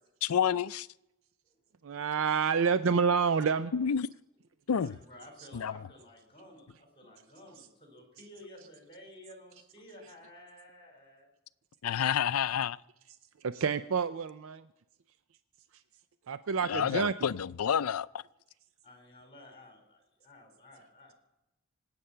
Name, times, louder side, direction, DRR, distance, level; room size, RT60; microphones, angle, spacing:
voice 1, 0.2-0.9 3.7-4.1 4.7-5.0 5.5-5.7 11.8-12.8 16.7-18.1, left 8 dB, 85° left, 0.4 m, -29 dB
voice 2, 1.8-3.7 5.4-5.5 7.6-7.7 13.4-14.7 15.7-15.8 16.3-17.1, right 6 dB, 65° right, 0.4 m, -28 dB
voice 3, 4.7-11.3 16.8-17.0 18.8-21.1, left 1 dB, 25° left, 4.3 m, -53 dB
25.5 x 8.8 x 5.6 m
head